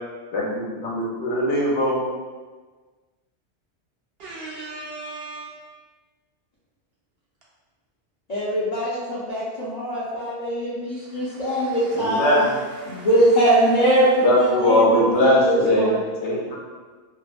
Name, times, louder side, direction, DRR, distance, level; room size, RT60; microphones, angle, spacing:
voice 1, 0.3-2.0 11.9-12.5 14.2-15.9 16.2-16.6, left 1 dB, 70° left, -4 dB, 0.9 m, -20 dB
voice 2, 4.2-5.6 11.0-13.5 13.9-14.2, right 2 dB, 60° right, -6 dB, 0.7 m, -40 dB
voice 3, 8.3-12.4 12.9-16.0, right 1 dB, 50° left, -11 dB, 0.5 m, -22 dB
2.8 x 2.1 x 2.4 m, 1.4 s
omnidirectional pair, 1.3 m